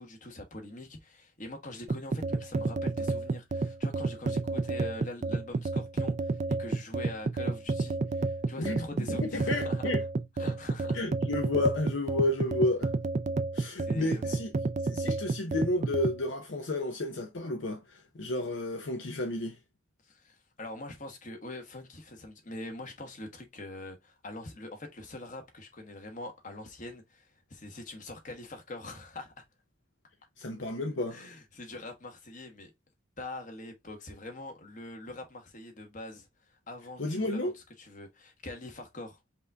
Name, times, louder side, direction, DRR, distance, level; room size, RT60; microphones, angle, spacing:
voice 1, 0.0-9.8 10.4-11.0 13.8-14.4 20.1-29.4 31.1-32.7 33.2-36.3 36.7-37.5 37.8-39.2, left 2 dB, 40° left, 1.3 m, -44 dB
sound 1, 1.9-16.2, right 3 dB, 35° right, 0.3 m, -30 dB
voice 2, 8.6-10.0 10.9-12.9 13.5-14.5 14.8-19.6 30.4-31.2 37.0-37.5, left 1 dB, 60° left, 0.7 m, -31 dB
5.3 x 2.6 x 3.4 m
head